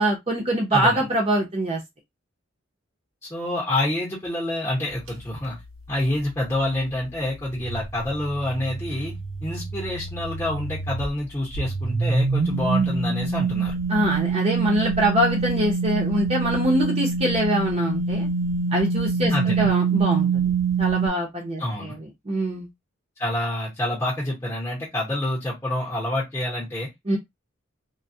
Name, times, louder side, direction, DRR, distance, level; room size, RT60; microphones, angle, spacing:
voice 1, 0.0-1.8 13.9-18.3 18.7-20.5 20.8-22.0 22.3-22.7 27.1-27.2, right 1 dB, 30° right, 0.6 m, -24 dB
voice 2, 0.7-1.1 3.3-5.6 5.9-9.2 9.4-13.7 19.3-19.7 21.6-22.0 23.2-26.9, left 1 dB, 15° left, 0.8 m, -27 dB
sound 1, 7.6-11.1 11.5-21.1, right 4 dB, 75° right, 0.5 m, -25 dB
2.2 x 2.1 x 2.6 m
head